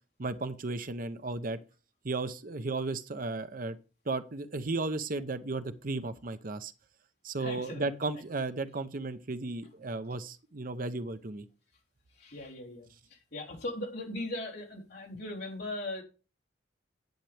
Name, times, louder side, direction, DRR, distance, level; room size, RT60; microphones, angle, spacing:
voice 1, 0.2-1.6 2.0-3.8 4.1-6.7 7.2-11.5, right 3 dB, 50° right, 0.8 m, -34 dB
voice 2, 7.4-7.8 12.2-16.0, left 1 dB, 60° left, 3.6 m, -39 dB
10.5 x 8.8 x 3.4 m
head